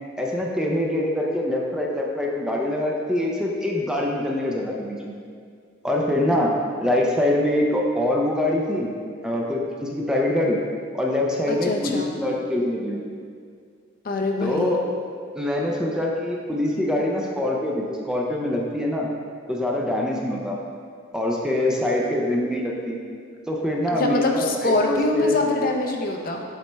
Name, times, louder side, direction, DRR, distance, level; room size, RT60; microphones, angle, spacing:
voice 1, 0.2-5.1 5.8-6.5 6.8-8.9 9.2-10.6 10.9-13.0 14.4-14.8 15.3-19.1 19.5-20.6 21.1-23.0 23.5-25.4, left 1 dB, 5° right, -1 dB, 0.5 m, -24 dB
voice 2, 11.5-12.1 14.0-14.8 23.9-26.4, left 2 dB, 50° left, 2 dB, 0.6 m, -24 dB
8.0 x 4.3 x 3.3 m, 2.1 s
head